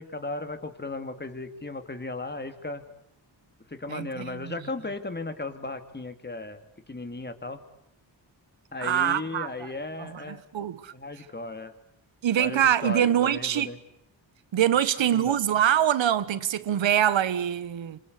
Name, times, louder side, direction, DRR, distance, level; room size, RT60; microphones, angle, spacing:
voice 1, 0.0-2.8 3.7-6.6 6.9-7.6 8.7-10.4 10.9-11.7 12.3-13.8 15.1-15.4, left 2 dB, 20° left, 2.7 m, -36 dB
voice 2, 3.9-4.5 8.8-9.7 10.0-10.9 12.2-13.7 14.5-18.0, right 10 dB, 80° right, 1.3 m, -24 dB
26.5 x 26.5 x 8.3 m
cardioid pair, 85°, 45 cm